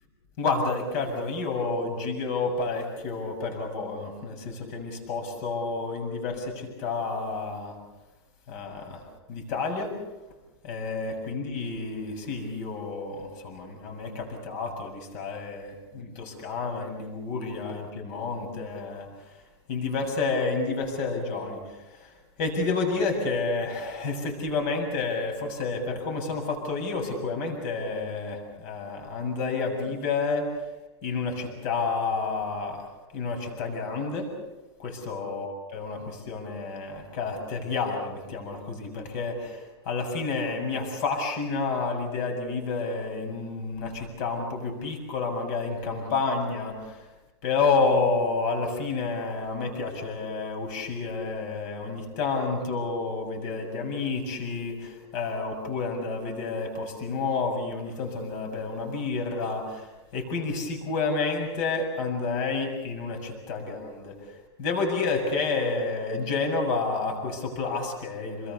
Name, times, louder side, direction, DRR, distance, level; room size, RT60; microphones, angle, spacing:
voice 1, 0.4-7.7 8.5-9.0 9.3-10.0 10.6-19.1 19.7-21.6 22.0-22.1 22.4-30.5 31.0-32.8 33.1-34.3 34.8-47.0 47.4-59.9 60.1-64.2 64.6-68.5, left 4 dB, 40° left, 3 dB, 7.2 m, -30 dB
27.5 x 22.0 x 7.0 m, 1.1 s
supercardioid pair, 160°, 14 cm